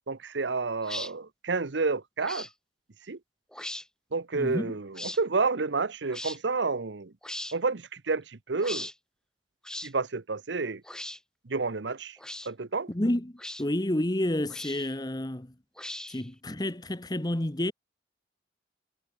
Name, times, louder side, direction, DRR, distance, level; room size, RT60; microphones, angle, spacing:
voice 1, 0.1-2.5 3.1-3.2 4.1-7.1 7.5-8.9 9.8-10.8 11.4-12.2 12.4-12.9, right 4 dB, 85° right, 0.9 m, -30 dB
sound 1, 0.8-1.1 2.2-2.5 3.5-3.8 4.9-5.2 6.1-6.4 7.2-7.6 8.6-8.9 9.6-9.9 10.8-11.2 12.2-12.5 13.4-13.6 14.5-14.9 15.8-16.3, left 1 dB, 5° left, 3.7 m, -38 dB
voice 2, 4.3-4.7 12.9-15.5 16.1-17.7, left 1 dB, 20° left, 1.2 m, -30 dB
head